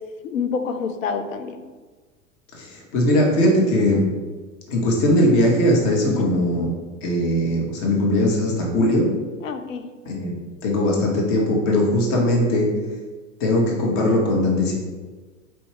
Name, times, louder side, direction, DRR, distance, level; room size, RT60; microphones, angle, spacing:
voice 1, 0.2-1.6 6.0-6.3 9.4-9.8, left 6 dB, 80° left, 7 dB, 0.6 m, -27 dB
voice 2, 2.5-4.0 4.7-6.7 7.0-9.0 10.0-10.3 10.6-12.7 13.4-14.8, left 1 dB, 45° left, -1 dB, 1.1 m, -20 dB
4.4 x 2.7 x 3.2 m, 1.4 s
hypercardioid pair, 90°, 39 cm